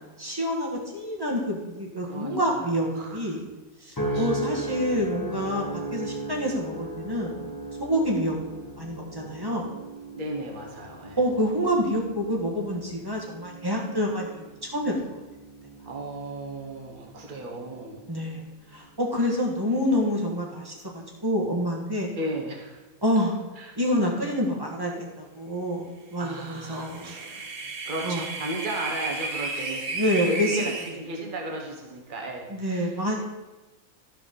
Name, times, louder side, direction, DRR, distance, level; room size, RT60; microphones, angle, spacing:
voice 1, 0.2-3.4 3.8-7.5 7.8-8.3 8.8-9.6 11.2-14.9 18.1-18.4 18.7-20.7 21.2-22.1 23.0-23.3 23.7-27.1 28.0-28.2 29.9-30.6 32.5-33.1, equal, 15° right, -1 dB, 1.7 m, -27 dB
voice 2, 2.0-3.3 4.0-4.9 10.1-11.2 15.9-18.0 22.1-22.8 23.6-23.7 26.2-27.5 27.9-33.0, right 1 dB, 35° right, 0 dB, 1.5 m, -35 dB
sound 1, 4.0-18.4 19.0-19.4, right 1 dB, 15° left, 1.0 m, -37 dB
sound 2, 26.6-30.9, right 3 dB, 75° right, 1.5 m, -33 dB
13.0 x 4.8 x 5.4 m, 1.2 s
omnidirectional pair, 1.5 m